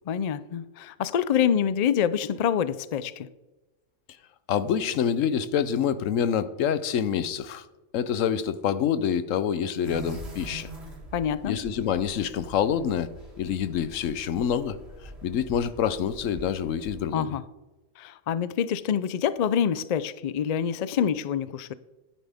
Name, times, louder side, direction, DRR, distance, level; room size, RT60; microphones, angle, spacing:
voice 1, 0.1-3.3 11.1-11.6 17.1-17.4 18.0-21.7, left 8 dB, 70° left, 16 dB, 0.3 m, -26 dB
voice 2, 4.5-7.7 7.9-10.7 11.5-13.1 13.4-14.8 15.2-17.3, left 8 dB, 85° left, 14 dB, 1.1 m, -26 dB
sound 1, 9.8-17.0, right 1 dB, 55° right, 3.1 m, -44 dB
11.5 x 10.0 x 3.5 m, 1.1 s
omnidirectional pair, 1.3 m